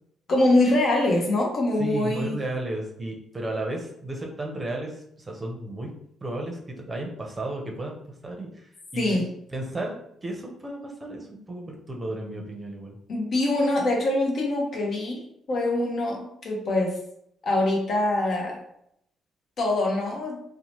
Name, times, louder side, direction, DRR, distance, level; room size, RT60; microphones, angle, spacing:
voice 1, 0.3-2.4 9.0-9.2 13.1-17.0 17.4-18.6 19.6-20.4, left 2 dB, 55° left, 0 dB, 0.7 m, -24 dB
voice 2, 1.8-5.9 6.2-7.9 8.2-9.2 9.5-9.9 10.2-13.0, right 1 dB, 25° right, 0 dB, 0.6 m, -33 dB
2.7 x 2.1 x 3.0 m, 0.73 s
cardioid pair, 90°, 0 cm